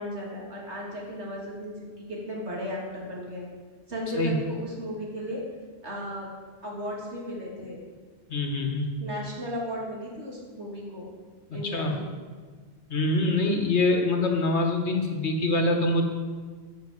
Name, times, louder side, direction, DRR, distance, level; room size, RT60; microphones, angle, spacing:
voice 1, 0.0-3.5 3.9-5.4 5.8-6.3 6.6-7.8 9.0-11.1 11.5-12.1, equal, 80° right, -3 dB, 3.2 m, -35 dB
voice 2, 8.3-8.9 11.5-11.9 12.9-16.0, left 2 dB, 80° left, 3 dB, 1.9 m, -25 dB
12.5 x 6.9 x 7.7 m, 1.5 s
omnidirectional pair, 1.1 m